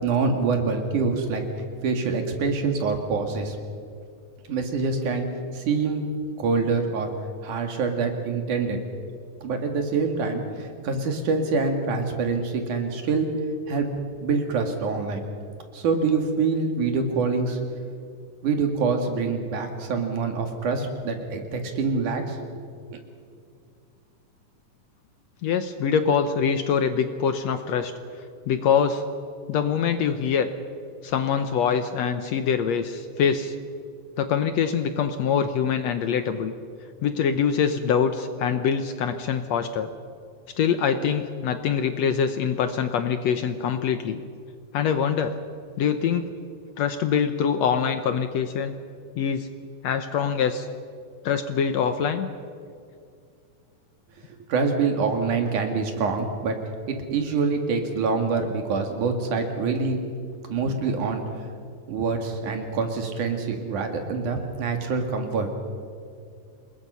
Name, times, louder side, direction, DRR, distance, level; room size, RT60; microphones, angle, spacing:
voice 1, 0.0-1.4 1.8-3.6 4.5-5.3 5.5-6.0 6.4-7.1 7.4-8.8 9.4-13.3 13.7-13.9 14.2-15.2 15.7-17.6 18.4-22.6 22.9-23.0 54.5-56.6 56.9-60.0 60.5-61.2 61.9-65.5, right 4 dB, 70° right, 4 dB, 3.6 m, -25 dB
voice 2, 25.4-27.9 28.5-29.0 29.5-30.5 31.0-33.6 34.2-36.5 37.0-39.9 40.6-44.2 44.7-45.4 45.8-46.3 46.8-48.7 49.2-49.5 49.8-50.7 51.2-52.3, left 7 dB, 70° left, 9 dB, 1.8 m, -24 dB
27.5 x 21.0 x 5.6 m, 2.3 s
omnidirectional pair, 3.7 m